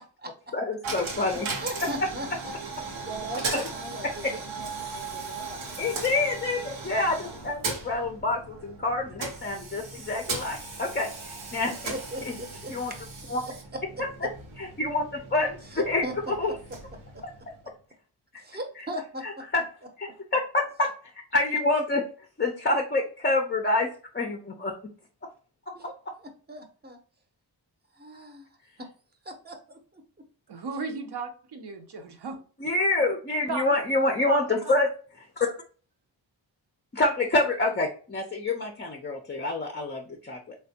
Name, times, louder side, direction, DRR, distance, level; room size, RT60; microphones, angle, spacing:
voice 1, 0.5-1.5 1.8-1.9 3.5-3.6 4.2-4.4 5.8-11.9 12.2-12.4 12.7-12.9 13.3-13.4 14.6-16.5 18.8-18.9 19.2-19.6 20.0-20.9 21.3-22.0 22.4-24.7 25.7-25.8 26.1-26.2 32.6-34.9 35.4-35.5 36.9-40.5, left 2 dB, 25° left, 2 dB, 0.4 m, -27 dB
Coin (dropping), 0.8-17.8, right 3 dB, 90° right, 0.8 m, -37 dB
voice 2, 1.6-2.6 2.8-5.6 11.9-12.7 13.9-14.0 15.7-16.1 17.1-17.2 18.4-19.2 25.7-25.9 26.5-27.0 27.9-28.5 28.8-28.9 29.2-30.0, right 1 dB, 20° right, 4 dB, 0.7 m, -38 dB
voice 3, 30.5-32.4 33.5-33.6 34.3-34.4 34.6-34.7, right 4 dB, 60° right, 6 dB, 0.7 m, -35 dB
3.2 x 2.2 x 2.7 m, 0.39 s
cardioid pair, 60°, 46 cm